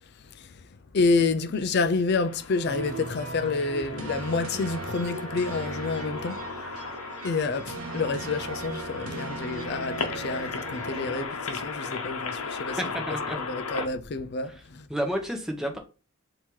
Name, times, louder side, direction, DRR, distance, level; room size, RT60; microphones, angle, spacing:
voice 1, 0.0-6.9 7.2-12.8 13.3-14.9, left 4 dB, 50° left, 0.4 m, -29 dB
sound 1, 2.1-13.9, left 4 dB, 90° left, 0.9 m, -37 dB
sound 2, 2.7-11.3, right 3 dB, 85° right, 0.9 m, -37 dB
voice 2, 12.8-13.4 14.9-15.8, equal, ahead, 0.8 m, -31 dB
4.4 x 2.9 x 3.6 m
head